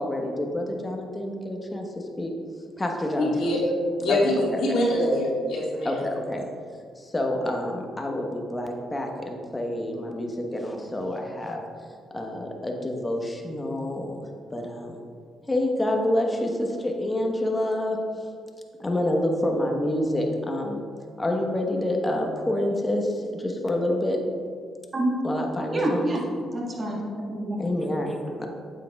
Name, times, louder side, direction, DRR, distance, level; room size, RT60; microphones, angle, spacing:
voice 1, 0.0-2.3 2.8-3.5 4.1-4.2 4.5-4.8 5.8-6.5 7.0-11.6 12.1-14.2 14.5-15.0 15.5-18.3 18.8-20.8 21.2-24.2 25.2-26.2 27.6-28.5, left 1 dB, 15° left, 1 dB, 1.1 m, -28 dB
voice 2, 3.2-3.6 4.0-6.0, left 1 dB, 75° left, -3 dB, 1.9 m, -24 dB
voice 3, 25.7-26.2 26.5-27.6, right 1 dB, 30° right, -2 dB, 1.6 m, -27 dB
8.9 x 7.6 x 2.3 m, 2.1 s
cardioid pair, 90°, 0 cm